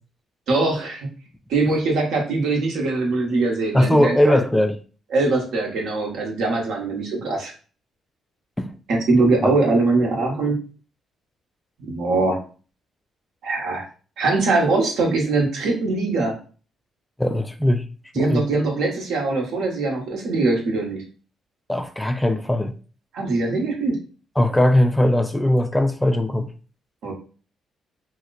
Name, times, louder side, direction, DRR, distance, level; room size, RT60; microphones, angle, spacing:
voice 1, 0.5-1.1 1.5-4.4 5.1-7.5 8.9-10.6 11.8-12.4 13.4-13.9 14.2-16.4 18.1-21.0 23.1-24.0 27.0-27.1, right 3 dB, 80° right, 1.0 m, -22 dB
voice 2, 3.7-4.8 8.6-8.7 9.4-9.5 17.2-17.9 18.2-18.5 21.7-22.7 24.4-26.5, left 1 dB, 10° left, 0.3 m, -19 dB
2.9 x 2.1 x 3.9 m
cardioid pair, 90°, 0 cm